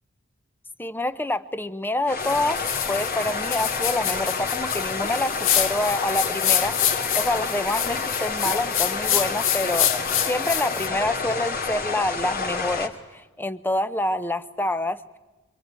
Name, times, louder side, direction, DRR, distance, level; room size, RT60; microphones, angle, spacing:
voice 1, 0.8-15.2, left 1 dB, 10° left, 14 dB, 0.8 m, -27 dB
sound 1, 2.1-12.9, left 4 dB, 45° left, 2.5 m, -29 dB
sound 2, 2.2-10.9, left 10 dB, 60° left, 1.4 m, -27 dB
26.0 x 24.5 x 9.1 m, 1.1 s
head